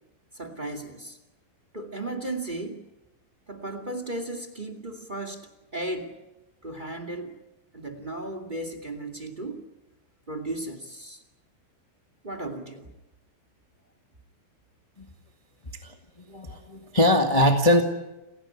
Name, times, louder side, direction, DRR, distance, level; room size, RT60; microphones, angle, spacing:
voice 1, 0.3-1.2 1.7-2.9 3.5-6.2 6.6-7.4 7.7-9.6 10.3-11.2 12.2-12.9, right 2 dB, 15° right, 8 dB, 1.8 m, -35 dB
voice 2, 15.8-17.8, left 1 dB, 25° left, 4 dB, 0.8 m, -22 dB
29.5 x 17.0 x 9.9 m, 1.0 s
omnidirectional pair, 4.1 m